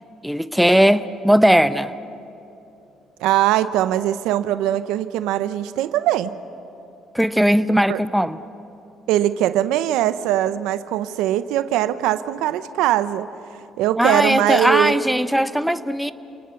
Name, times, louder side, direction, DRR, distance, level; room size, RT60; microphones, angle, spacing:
voice 1, 0.2-1.9 7.1-8.4 14.0-16.1, equal, ahead, 13 dB, 0.9 m, -18 dB
voice 2, 3.2-6.3 7.9-8.0 9.1-13.3 13.8-15.0, right 13 dB, 85° right, 13 dB, 0.7 m, -21 dB
29.5 x 20.0 x 7.0 m, 2.9 s
supercardioid pair, 70°, 0 cm